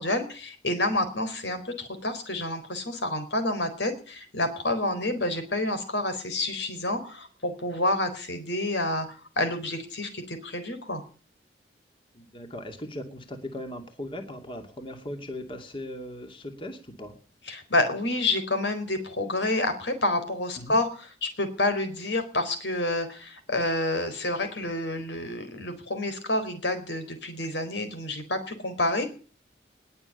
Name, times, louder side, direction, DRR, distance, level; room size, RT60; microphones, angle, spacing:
voice 1, 0.0-11.0 17.5-29.1, left 2 dB, 75° left, 9 dB, 4.1 m, -29 dB
voice 2, 12.1-17.2 20.6-20.8, left 1 dB, 30° left, 5 dB, 2.5 m, -38 dB
20.5 x 7.1 x 9.1 m, 0.40 s
head